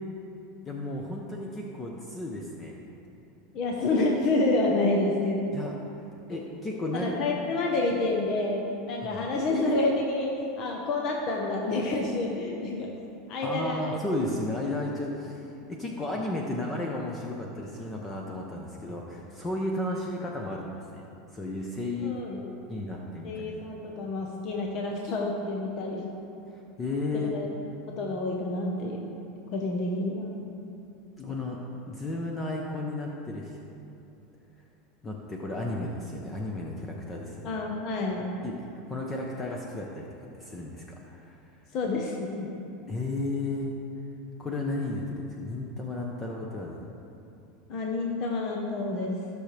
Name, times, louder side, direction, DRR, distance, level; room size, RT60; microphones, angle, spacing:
voice 1, 0.6-2.7 5.5-5.7 6.3-7.1 13.4-21.0 21.3-22.3 22.7-23.5 26.5-27.3 31.2-31.6 31.9-33.6 35.0-37.5 38.4-40.1 40.4-41.4 42.9-43.7 44.4-46.8, left 2 dB, 20° left, -1 dB, 0.9 m, -33 dB
voice 2, 3.5-5.5 6.9-12.9 13.3-14.0 22.0-22.5 23.2-26.1 27.1-27.5 27.9-29.0 29.5-30.4 37.4-38.3 41.7-42.5 47.7-49.2, left 2 dB, 50° left, -1 dB, 1.1 m, -28 dB
15.0 x 6.4 x 3.4 m, 2.8 s
supercardioid pair, 130°, 0 cm